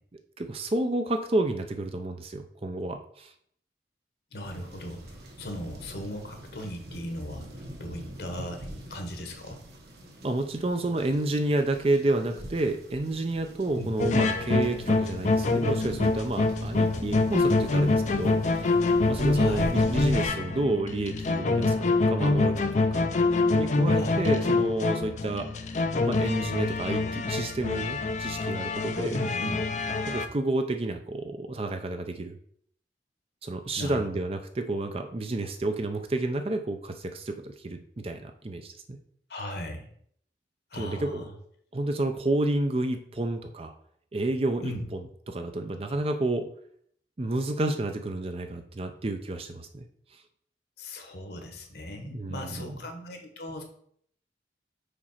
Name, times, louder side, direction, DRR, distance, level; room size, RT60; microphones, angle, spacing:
voice 1, 0.4-3.3 10.2-18.6 19.1-22.6 22.9-23.1 23.5-25.5 26.1-29.2 30.1-32.4 33.4-39.0 40.7-41.2 41.7-43.7 44.1-44.7 45.3-46.5 47.2-49.8 52.0-52.8, right 2 dB, 35° right, 6 dB, 0.5 m, -30 dB
voice 2, 4.3-9.6 13.7-13.9 19.3-19.7 24.0-24.4 29.1-29.6 33.8-34.2 39.3-39.9 40.7-41.3 44.6-44.8 50.8-53.6, left 1 dB, 65° left, 4 dB, 1.3 m, -37 dB
sound 1, 4.4-20.3, right 1 dB, 65° right, 1.3 m, -43 dB
sound 2, 14.0-30.3, left 3 dB, 40° left, 0.5 m, -25 dB
5.0 x 4.2 x 5.6 m, 0.65 s
head